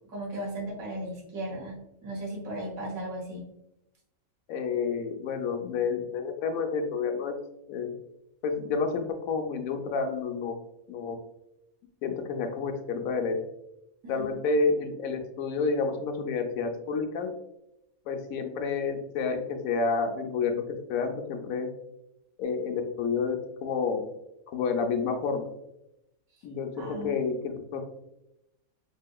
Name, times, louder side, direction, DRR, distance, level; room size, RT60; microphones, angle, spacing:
voice 1, 0.1-3.5 14.0-14.4 26.8-27.1, right 1 dB, 75° right, 0 dB, 1.5 m, -36 dB
voice 2, 4.5-7.4 7.7-7.9 8.4-10.5 10.9-11.2 12.0-13.4 14.1-17.3 18.1-21.7 22.4-23.4 23.6-24.0 24.5-25.4 26.4-27.8, left 4 dB, 75° left, 5 dB, 1.0 m, -29 dB
4.9 x 2.8 x 2.2 m, 0.86 s
omnidirectional pair, 1.5 m